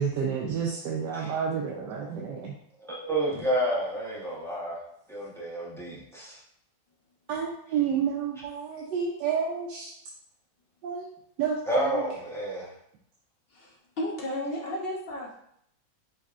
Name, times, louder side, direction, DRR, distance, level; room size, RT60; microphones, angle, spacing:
voice 1, 0.0-2.5 7.3-9.9 10.8-11.1 11.4-12.1, right 7 dB, 85° right, -2 dB, 1.2 m, -30 dB
voice 2, 2.8-4.8 5.1-6.4 11.7-12.7, right 1 dB, 5° left, -6 dB, 0.3 m, -30 dB
voice 3, 14.0-15.3, left 1 dB, 55° left, -2 dB, 0.6 m, -33 dB
5.2 x 3.4 x 2.4 m, 0.72 s
omnidirectional pair, 1.8 m